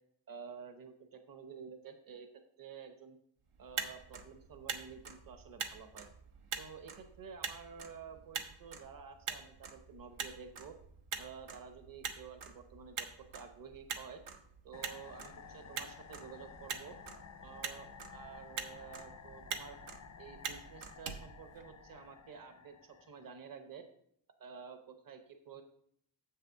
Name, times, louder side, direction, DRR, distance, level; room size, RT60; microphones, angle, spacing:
voice 1, 0.3-2.3 2.6-3.2 3.6-6.1 6.6-10.7 11.2-14.2 14.6-16.9 17.4-19.8 20.2-23.8 24.4-25.6, right 6 dB, 45° right, 7 dB, 0.9 m, -51 dB
Motor vehicle (road), 3.5-22.1, right 6 dB, 85° right, 1.0 m, -45 dB
horror whoosh, 14.7-23.5, left 6 dB, 35° left, 0.4 m, -54 dB
7.6 x 6.7 x 4.6 m, 0.68 s
wide cardioid pair, 155°, 49 cm